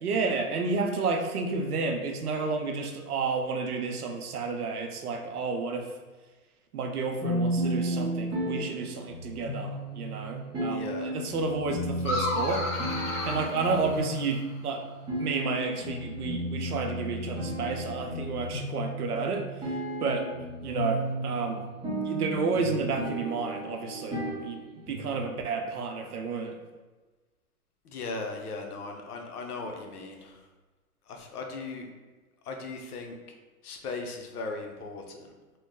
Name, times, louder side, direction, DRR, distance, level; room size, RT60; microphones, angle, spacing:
voice 1, 0.0-5.9 6.7-12.6 13.2-14.8 15.2-20.3 20.6-21.6 22.0-26.6, right 4 dB, 85° right, 4 dB, 0.7 m, -31 dB
sound 1, 7.2-25.2, right 1 dB, 10° right, 0.6 m, -34 dB
voice 2, 10.7-11.1 27.8-30.5 31.1-31.9 32.4-33.2 33.6-35.3, left 3 dB, 80° left, 2 dB, 0.8 m, -38 dB
sound 2, 12.0-14.5, left 1 dB, 55° left, 1.0 m, -32 dB
3.0 x 2.2 x 3.5 m, 1.3 s
hypercardioid pair, 130°, 44 cm